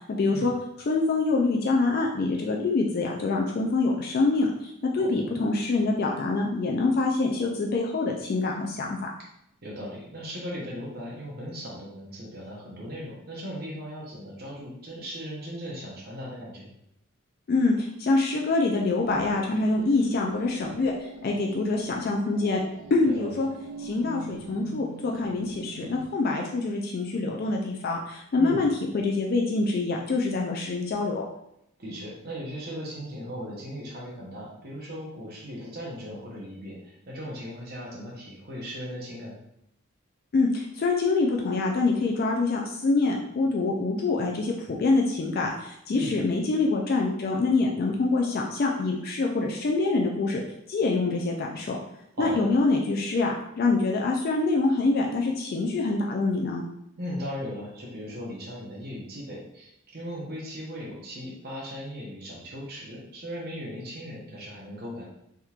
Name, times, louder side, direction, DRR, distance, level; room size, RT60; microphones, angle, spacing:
voice 1, 0.1-0.5 0.9-9.0 17.5-22.6 22.9-23.5 23.8-31.2 40.3-50.4 50.7-51.8 52.2-56.6, left 3 dB, 45° left, 0 dB, 0.3 m, -25 dB
voice 2, 9.6-16.7 23.0-23.4 28.4-28.6 31.8-39.4 45.9-46.2 52.1-52.4 57.0-65.0, equal, 45° right, -4 dB, 0.8 m, -38 dB
sound 1, 18.7-26.1, right 5 dB, 80° right, 0.3 m, -44 dB
3.5 x 2.8 x 2.3 m, 0.78 s
head